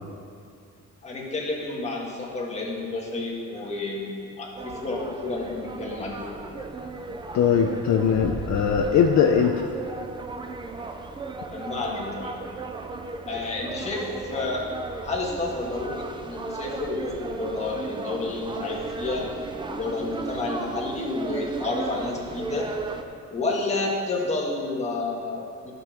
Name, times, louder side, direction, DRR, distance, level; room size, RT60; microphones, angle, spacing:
voice 1, 1.0-6.3 11.5-12.4 13.3-14.6 15.0-19.3 19.7-22.7 23.3-25.7, left 2 dB, 20° left, -3 dB, 1.7 m, -30 dB
sound 1, 4.5-23.0, right 3 dB, 15° right, 0.4 m, -36 dB
voice 2, 7.3-9.7, left 7 dB, 60° left, 2 dB, 0.6 m, -20 dB
12.5 x 5.4 x 6.2 m, 2.4 s
cardioid pair, 175°, 31 cm